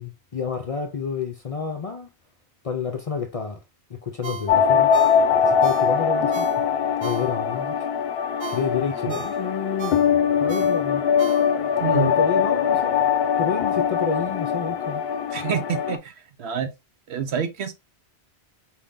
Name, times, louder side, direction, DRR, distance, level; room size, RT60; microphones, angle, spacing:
voice 1, 0.0-2.1 2.6-3.6 3.9-4.9 5.4-6.6 7.0-7.9 8.5-10.0 10.4-11.0 11.9-13.0 13.4-15.0, left 5 dB, 45° left, 0.5 m, -29 dB
Ringtone, 4.2-7.7 8.1-11.8 12.2-12.3, right 3 dB, 50° right, 0.8 m, -37 dB
sound 1, 4.5-16.0, left 7 dB, 65° left, 0.8 m, -22 dB
voice 2, 11.8-12.2 15.3-16.7 17.1-17.7, right 8 dB, 75° right, 1.0 m, -27 dB
4.5 x 3.6 x 2.5 m
omnidirectional pair, 1.1 m